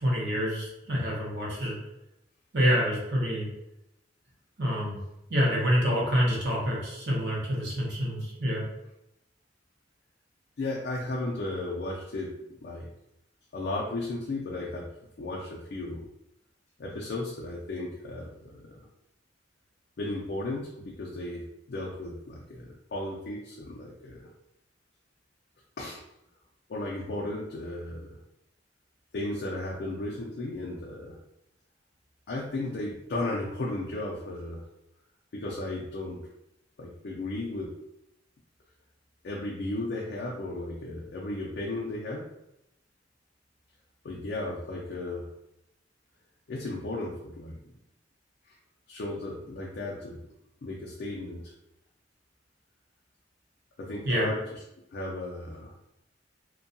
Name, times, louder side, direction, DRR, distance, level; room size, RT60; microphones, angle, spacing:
voice 1, 0.0-1.8 2.5-3.5 4.6-5.0 5.3-8.6 54.0-54.3, equal, 65° right, -4 dB, 0.8 m, -27 dB
voice 2, 10.6-12.9 13.5-14.9 15.2-16.1 16.8-18.8 20.0-24.3 25.8-26.0 26.7-28.2 29.1-31.2 32.3-34.6 35.3-36.3 36.8-37.7 39.2-42.3 44.0-45.3 46.5-47.7 48.9-50.2 50.6-51.5 53.8-54.4 54.9-55.7, left 2 dB, 55° left, -3 dB, 0.4 m, -35 dB
2.6 x 2.2 x 2.6 m, 0.87 s
head